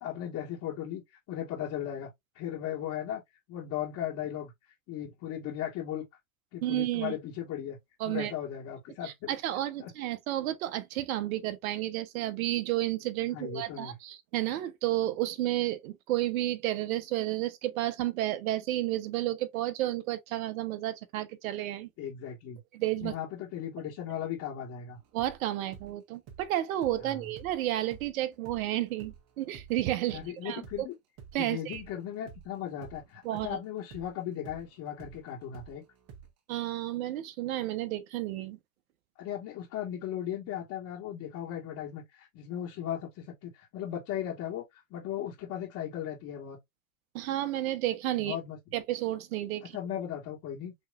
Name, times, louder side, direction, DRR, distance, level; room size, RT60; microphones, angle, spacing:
voice 1, 0.0-1.0 1.3-2.1 2.4-3.2 3.5-4.5 4.9-6.1 6.5-7.8 8.1-9.4 9.8-9.9 13.3-14.0 22.0-22.6 23.0-25.0 27.0-27.2 30.1-30.9 31.4-35.8 39.2-46.6 48.2-48.6 49.7-50.7, left 10 dB, 40° left, 1.7 m, -37 dB
voice 2, 6.6-7.2 8.0-8.3 9.0-21.9 22.7-23.1 25.1-30.9 31.3-31.8 33.2-33.6 36.5-38.6 47.1-48.4 48.7-49.8, right 14 dB, 70° right, 1.0 m, -31 dB
sound 1, 25.0-31.9 32.3-36.5, right 7 dB, 35° right, 1.2 m, -51 dB
5.5 x 3.0 x 2.4 m
hypercardioid pair, 115°, 43 cm